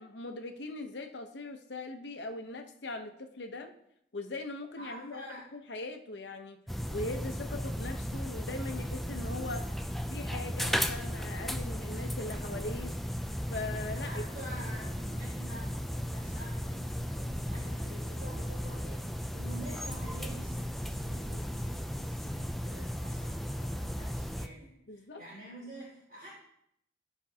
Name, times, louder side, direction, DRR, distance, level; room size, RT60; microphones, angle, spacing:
voice 1, 0.0-3.7 4.1-5.3 5.5-6.6 6.9-9.6 10.1-12.9 13.5-14.2 24.9-25.2, left 2 dB, 75° left, 5 dB, 0.9 m, -40 dB
voice 2, 4.8-5.5 14.0-26.3, right 1 dB, 50° right, -9 dB, 3.7 m, -48 dB
sound 1, 6.7-24.5, equal, ahead, 0.3 m, -35 dB
Wind instrument woodwind instrument, 11.1-19.4, left 2 dB, 45° left, 0.8 m, -59 dB
13.5 x 5.3 x 2.8 m, 0.75 s
head